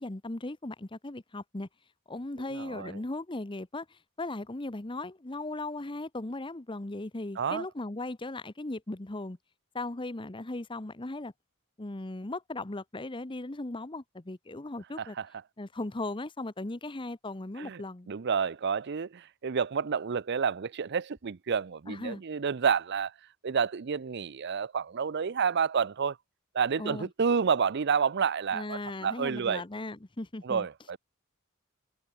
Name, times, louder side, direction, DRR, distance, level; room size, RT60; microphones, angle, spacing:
voice 1, 0.0-1.7 2.1-9.4 9.7-11.3 11.8-15.2 15.6-18.1 21.9-22.2 26.8-27.1 28.5-30.7, left 2 dB, 25° left, 0.9 m, -37 dB
voice 2, 2.5-2.9 7.4-7.6 15.0-15.3 17.6-17.8 18.1-23.1 23.4-26.2 26.5-29.6 30.4-31.0, right 6 dB, 55° right, 0.5 m, -29 dB
head